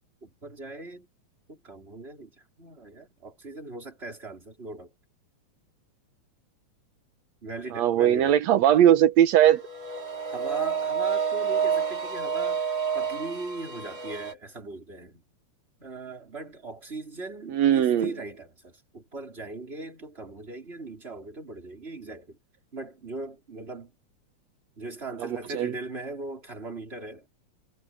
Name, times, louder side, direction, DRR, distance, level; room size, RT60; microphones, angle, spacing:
voice 1, 0.2-1.1 1.5-4.9 7.4-8.4 10.3-15.2 15.8-22.4 22.7-23.9 24.8-27.3, right 3 dB, 20° right, 4.8 m, -39 dB
voice 2, 7.8-9.6 17.5-18.1 25.2-25.7, right 11 dB, 75° right, 2.1 m, -20 dB
sound 1, 9.6-14.3, right 6 dB, 40° right, 3.6 m, -29 dB
omnidirectional pair, 3.3 m